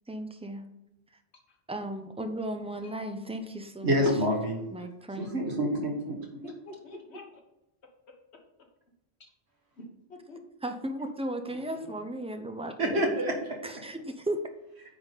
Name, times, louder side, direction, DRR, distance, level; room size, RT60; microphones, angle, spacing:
voice 1, 0.1-0.6 1.7-3.9 4.7-5.3 10.6-13.0 13.6-14.4, right 1 dB, 10° right, 6 dB, 0.4 m, -35 dB
voice 2, 3.8-4.9 5.2-6.2 12.8-13.8, equal, 80° right, 1 dB, 1.8 m, -28 dB
voice 3, 6.4-7.4 9.8-10.4 11.4-12.1, left 2 dB, 85° left, 2 dB, 1.5 m, -47 dB
9.2 x 3.8 x 4.1 m, 0.90 s
omnidirectional pair, 1.1 m